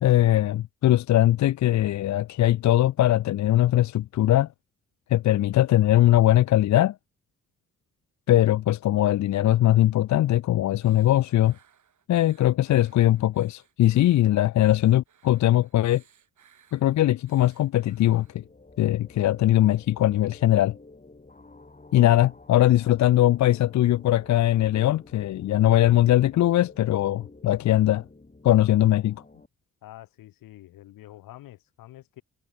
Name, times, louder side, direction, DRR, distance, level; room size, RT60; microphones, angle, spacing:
voice 1, 0.0-4.5 5.1-7.0 8.3-11.6 12.1-16.0 16.7-18.4 18.8-20.7 21.9-28.0 28.4-29.2, left 13 dB, 55° left, 0.6 m, -21 dB
sound 1, 10.8-18.4, right 8 dB, 60° right, 6.0 m, -62 dB
sound 2, 17.9-29.5, left 2 dB, 25° left, 6.3 m, -51 dB
voice 2, 29.8-32.2, left 15 dB, 80° left, 6.5 m, -47 dB
hypercardioid pair, 45°, 33 cm